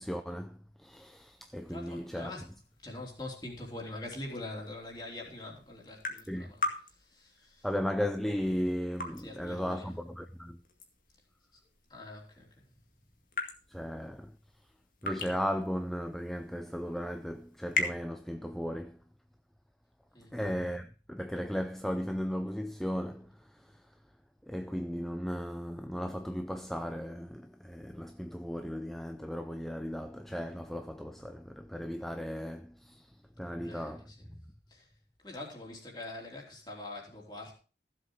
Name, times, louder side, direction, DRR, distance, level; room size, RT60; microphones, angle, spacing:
voice 1, 0.0-2.3 6.3-6.5 7.6-10.6 13.7-14.3 15.0-19.0 20.3-23.8 24.5-33.1 33.4-34.1, equal, ahead, 0.4 m, -36 dB
sound 1, 0.9-18.0, left 3 dB, 50° left, 2.1 m, -42 dB
voice 2, 1.6-2.5 2.8-7.7 9.2-9.9 11.5-11.6 11.9-12.7 20.1-20.4 33.4-34.3 34.7-34.9 35.2-37.6, left 2 dB, 25° left, 3.4 m, -44 dB
15.5 x 7.6 x 4.6 m
head